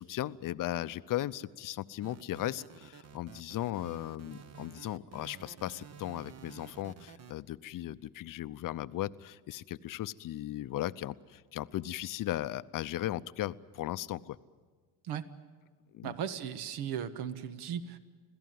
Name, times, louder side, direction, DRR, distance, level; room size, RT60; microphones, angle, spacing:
voice 1, 0.0-14.4 15.9-16.1, left 14 dB, 50° left, 15 dB, 0.7 m, -37 dB
sound 1, 2.0-7.3, right 8 dB, 40° right, 1.1 m, -51 dB
voice 2, 16.0-18.0, right 8 dB, 70° right, 11 dB, 1.5 m, -37 dB
26.5 x 17.0 x 9.4 m, 1.5 s
cardioid pair, 115°, 41 cm